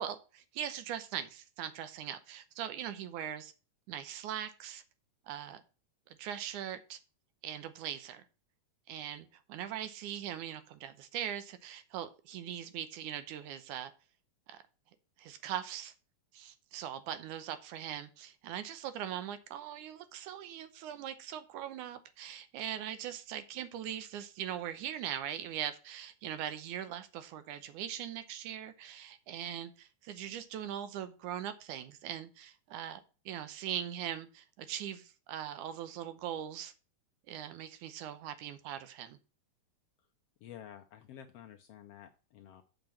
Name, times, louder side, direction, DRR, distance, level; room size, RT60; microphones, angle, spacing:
voice 1, 0.0-3.5 3.9-4.8 5.3-5.6 6.1-7.0 7.4-8.3 8.9-13.9 14.5-14.6 15.2-15.9 16.3-33.0 33.3-36.7 37.3-39.2, right 10 dB, 85° right, 2.4 m, -41 dB
voice 2, 40.4-42.6, left 10 dB, 75° left, 1.4 m, -51 dB
6.6 x 6.1 x 7.1 m
omnidirectional pair, 3.4 m